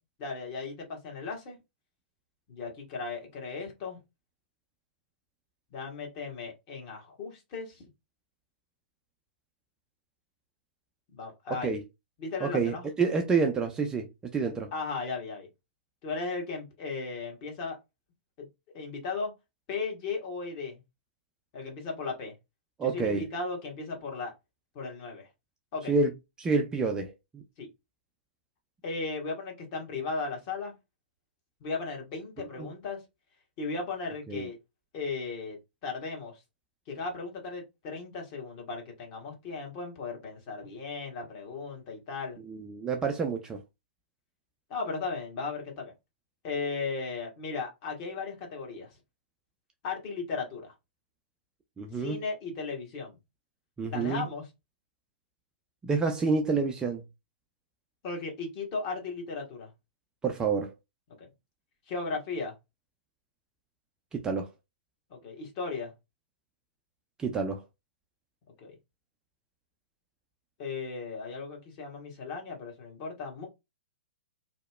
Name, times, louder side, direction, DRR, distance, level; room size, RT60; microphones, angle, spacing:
voice 1, 0.2-1.6 2.5-4.0 5.7-7.8 11.1-11.7 12.2-12.9 14.7-15.5 16.0-17.8 18.4-18.5 18.7-19.3 19.7-20.8 21.5-22.3 22.8-24.3 24.7-25.3 25.7-26.0 27.6-27.7 28.8-30.7 31.6-33.0 33.6-34.6 34.9-36.4 36.9-42.4 44.7-45.9 46.4-48.9 49.8-50.7 51.9-53.2 53.9-54.5 58.0-59.7 61.2-61.3 61.9-62.5 65.1-65.9 68.6-68.8 70.6-73.5, left 4 dB, 40° left, 1.1 m, -36 dB
voice 2, 12.4-14.1 14.3-14.7 22.8-23.2 25.9-26.1 26.4-27.4 32.6-32.7 34.3-34.5 42.5-43.6 51.8-52.2 53.8-54.3 55.8-57.0 60.2-60.7 64.1-64.5 67.2-67.6, right 4 dB, 10° right, 0.3 m, -28 dB
2.7 x 2.0 x 2.2 m
figure-of-eight pair, 110°, 6 cm